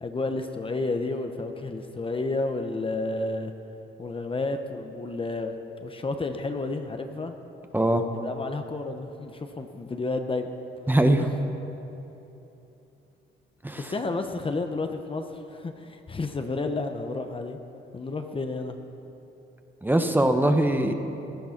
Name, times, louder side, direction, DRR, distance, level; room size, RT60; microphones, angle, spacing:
voice 1, 0.0-3.5 4.0-7.4 8.1-10.5 11.2-11.3 13.8-17.6 17.9-18.8, left 3 dB, 25° left, 6 dB, 0.9 m, -31 dB
voice 2, 7.7-8.0 10.9-11.2 13.6-13.8 19.8-20.9, right 1 dB, 10° right, 6 dB, 1.0 m, -21 dB
17.0 x 10.0 x 5.9 m, 3.0 s
cardioid pair, 90°, 20 cm